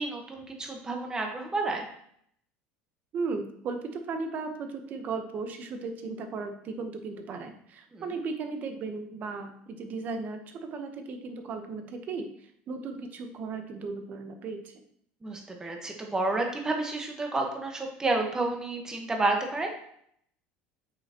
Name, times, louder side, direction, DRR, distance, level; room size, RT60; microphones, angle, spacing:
voice 1, 0.0-1.9 7.9-8.1 15.2-19.7, right 2 dB, 15° right, 2 dB, 1.3 m, -30 dB
voice 2, 3.1-14.8, right 4 dB, 45° right, 6 dB, 1.1 m, -36 dB
7.9 x 5.8 x 3.0 m, 0.68 s
supercardioid pair, 125°, 4 cm